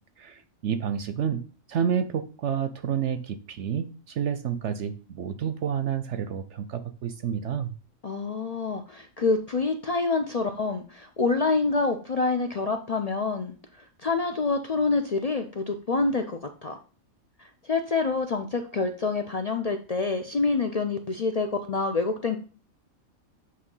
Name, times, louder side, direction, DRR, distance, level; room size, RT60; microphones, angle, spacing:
voice 1, 0.2-7.7, right 8 dB, 65° right, 11 dB, 0.8 m, -29 dB
voice 2, 8.0-13.5 14.0-16.8 17.4-22.4, left 3 dB, 60° left, 6 dB, 0.4 m, -27 dB
8.4 x 3.1 x 5.4 m, 0.37 s
omnidirectional pair, 1.4 m